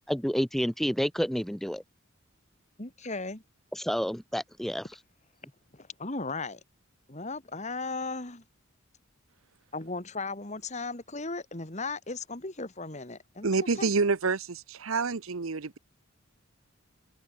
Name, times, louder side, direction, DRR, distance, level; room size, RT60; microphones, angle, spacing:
voice 1, 0.1-1.8 3.7-5.0, equal, ahead, 0.4 m, -29 dB
voice 2, 2.8-3.4 5.7-6.6 7.1-8.4 9.7-13.5 13.8-13.9, left 3 dB, 35° left, 2.2 m, -36 dB
voice 3, 13.4-15.8, right 4 dB, 75° right, 0.9 m, -28 dB
head